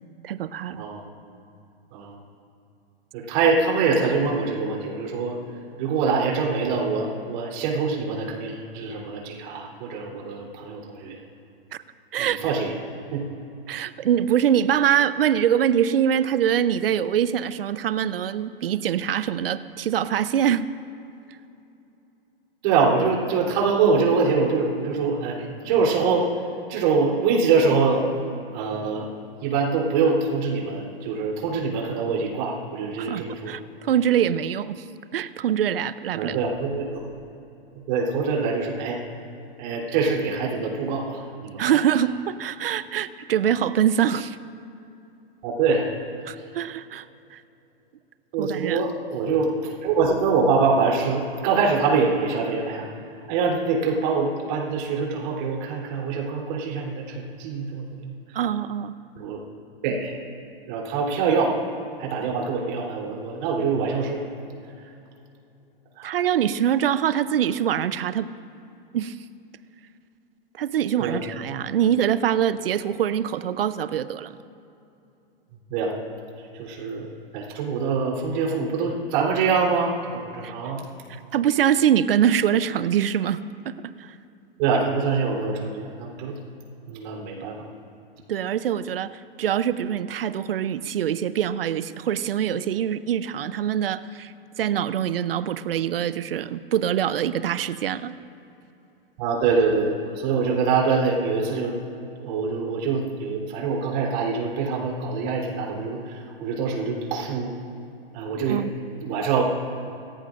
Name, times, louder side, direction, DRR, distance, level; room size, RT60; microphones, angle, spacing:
voice 1, 0.2-0.8 11.7-11.8 12.1-12.4 13.7-20.7 33.0-34.8 35.1-36.4 41.6-44.4 46.3-47.4 48.4-48.8 58.3-58.9 66.0-68.3 68.9-69.2 70.6-74.4 80.4-80.5 81.1-83.4 83.6-84.1 88.3-98.2 108.4-108.7, right 9 dB, 70° right, 15 dB, 0.7 m, -24 dB
voice 2, 0.8-1.1 1.9-2.1 3.1-5.3 5.8-11.2 12.2-12.7 13.1-13.2 22.6-26.3 26.7-28.1 28.5-29.1 29.4-33.6 36.1-37.1 37.9-39.0 39.6-41.7 45.4-45.8 48.3-52.9 53.3-58.1 59.2-59.4 59.8-60.1 60.7-61.6 62.0-64.2 66.0-66.2 71.0-71.1 75.7-75.9 76.6-79.9 80.3-80.8 84.6-86.4 86.9-87.5 99.2-101.7 102.2-107.5 108.1-108.6 109.0-109.4, right 4 dB, 50° right, -2 dB, 3.6 m, -24 dB
27.0 x 14.0 x 2.6 m, 2.8 s
hypercardioid pair, 110°, 30 cm